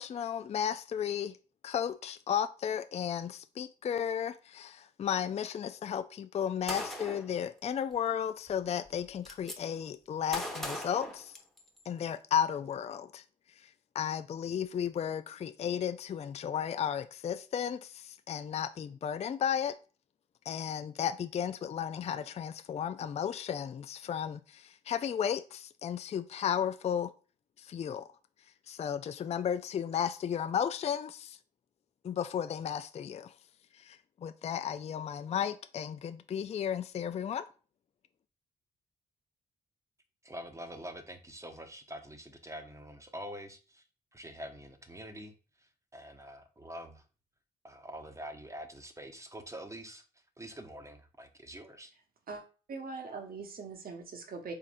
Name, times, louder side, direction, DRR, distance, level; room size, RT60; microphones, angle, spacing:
voice 1, 0.0-1.3 1.6-11.3 11.9-13.2 13.6-13.7 13.9-19.7 20.5-27.1 27.6-28.1 28.7-31.4 32.0-33.3 33.7-37.4, left 8 dB, 35° left, 0.4 m, -34 dB
Gunshot gunfire, 6.7-7.3 8.5-8.6 8.9-9.6 10.3-11.8, equal, ahead, 1.1 m, -39 dB
voice 2, 40.2-43.8 44.1-45.3 45.6-47.0 47.6-50.0 50.4-51.9, equal, 15° right, 0.9 m, -45 dB
voice 3, 52.7-54.5, right 4 dB, 55° right, 1.1 m, -41 dB
4.1 x 3.7 x 2.5 m
hypercardioid pair, 45°, 19 cm